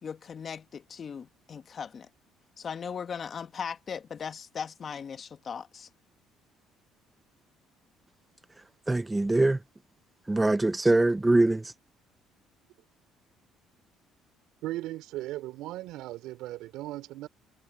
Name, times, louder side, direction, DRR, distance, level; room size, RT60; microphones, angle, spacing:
voice 1, 0.0-2.1 2.6-5.9, left 6 dB, 45° left, 1.8 m, -38 dB
voice 2, 8.9-9.6 10.3-11.7, right 2 dB, 15° right, 0.5 m, -23 dB
voice 3, 14.6-17.3, right 16 dB, 80° right, 4.1 m, -37 dB
cardioid pair, 95°, 0 cm